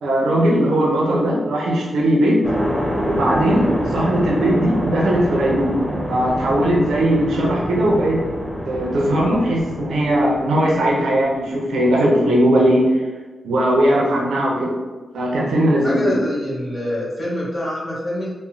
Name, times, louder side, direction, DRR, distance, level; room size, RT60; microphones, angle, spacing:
voice 1, 0.0-2.4 3.1-5.8 6.1-8.2 8.7-13.0 13.4-14.7 15.1-16.2, right 1 dB, 90° right, -3 dB, 0.5 m, -18 dB
sound 1, 2.4-11.5, equal, 5° right, 0.7 m, -26 dB
voice 2, 15.8-18.3, left 1 dB, 35° left, -8 dB, 1.4 m, -25 dB
3.0 x 2.1 x 2.5 m, 1.3 s
cardioid pair, 55°, 0 cm